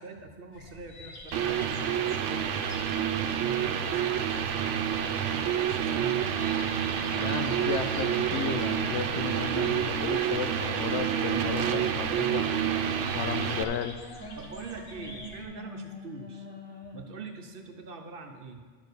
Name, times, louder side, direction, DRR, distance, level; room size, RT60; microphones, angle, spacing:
voice 1, 0.0-6.6 14.4-16.5 16.9-18.6, right 4 dB, 55° right, 4 dB, 0.8 m, -44 dB
sound 1, 0.5-15.4, left 2 dB, 60° left, 1.3 m, -48 dB
sound 2, 1.3-13.6, right 9 dB, 80° right, 0.9 m, -28 dB
voice 2, 7.2-12.8 13.1-14.0, left 8 dB, 75° left, 10 dB, 0.9 m, -34 dB
sound 3, 8.3-17.3, equal, 10° left, 0.8 m, -44 dB
11.5 x 4.6 x 6.7 m, 1.5 s
omnidirectional pair, 1.2 m